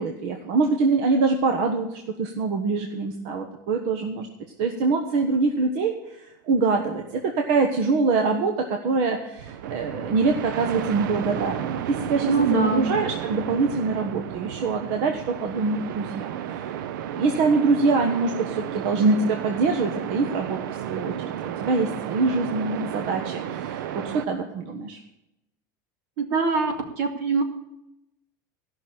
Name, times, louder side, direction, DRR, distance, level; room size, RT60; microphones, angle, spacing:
voice 1, 0.0-4.3 4.6-5.9 6.2-16.7 17.1-20.6 20.9-21.1 21.4-25.0, right 4 dB, 50° right, 4 dB, 1.1 m, -24 dB
sound 1, 9.4-24.3, right 10 dB, 85° right, 0.7 m, -33 dB
voice 2, 12.2-12.9 26.2-27.4, right 4 dB, 65° right, 4 dB, 2.3 m, -23 dB
15.0 x 6.1 x 8.6 m, 0.89 s
supercardioid pair, 175°, 10 cm